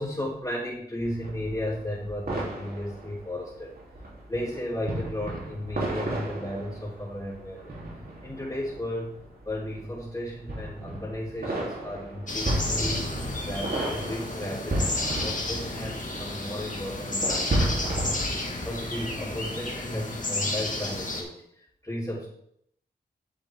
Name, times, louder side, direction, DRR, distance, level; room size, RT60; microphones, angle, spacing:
voice 1, 0.0-3.7 4.3-7.7 8.2-9.2 9.5-13.0 13.4-18.1 18.6-21.4 21.8-22.3, left 1 dB, 20° left, -9 dB, 3.8 m, -34 dB
sound 1, 1.0-19.5, right 1 dB, 60° right, 3.5 m, -34 dB
sound 2, 12.3-21.2, left 2 dB, 45° left, 2.0 m, -32 dB
10.5 x 7.5 x 3.7 m, 0.72 s
cardioid pair, 55°, 18 cm